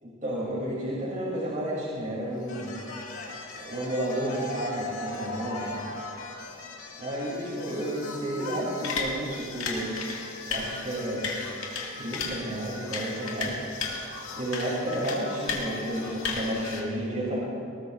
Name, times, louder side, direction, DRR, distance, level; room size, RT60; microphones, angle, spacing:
voice 1, 0.0-2.7 3.5-5.7 7.0-9.9 10.5-11.3 12.0-13.6 14.3-17.4, right 1 dB, 40° right, -7 dB, 3.1 m, -31 dB
sound 1, 2.4-16.8, left 4 dB, 80° left, 2.1 m, -36 dB
20.5 x 19.0 x 2.6 m, 2.6 s
head